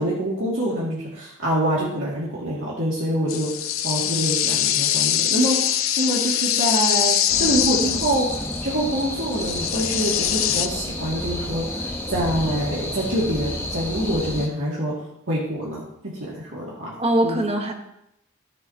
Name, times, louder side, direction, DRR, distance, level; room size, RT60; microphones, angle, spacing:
voice 1, 0.0-3.5 3.8-5.6 6.0-7.1 7.4-8.3 8.6-14.9 15.3-15.8 16.2-16.9 17.2-17.4, right 1 dB, 70° right, -7 dB, 2.3 m, -25 dB
sound 1, 3.3-8.7 9.0-9.1 9.3-10.7, left 11 dB, 85° left, 0.7 m, -23 dB
sound 2, 7.3-14.5, left 1 dB, 10° left, 1.0 m, -31 dB
voice 2, 17.0-17.7, right 1 dB, 30° right, 3 dB, 1.3 m, -22 dB
13.5 x 7.8 x 2.9 m, 0.81 s
head